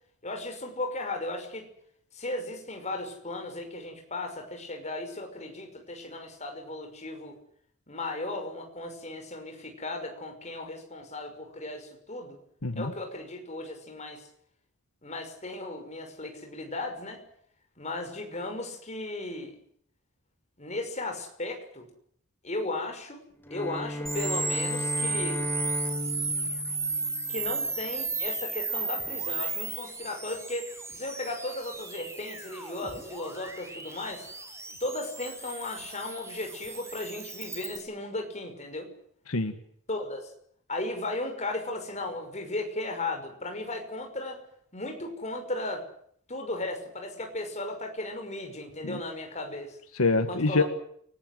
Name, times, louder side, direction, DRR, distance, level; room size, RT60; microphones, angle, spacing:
voice 1, 0.2-1.7 2.1-7.4 7.9-12.4 12.8-14.3 15.0-17.2 17.8-19.5 20.6-21.9 22.4-23.2 23.5-25.4 27.3-34.3 34.8-38.9 39.9-40.3 40.7-44.4 44.7-45.8 46.3-49.8 50.3-50.6, left 2 dB, 30° left, 4 dB, 5.9 m, -36 dB
voice 2, 12.6-12.9 39.3-39.6 48.8-49.0 49.9-50.6, left 3 dB, 75° left, 8 dB, 1.8 m, -25 dB
Bowed string instrument, 23.4-27.8, equal, 10° left, 2.0 m, -35 dB
sound 1, 24.1-37.8, right 3 dB, 10° right, 5.3 m, -34 dB
29.0 x 19.5 x 7.9 m, 0.68 s
head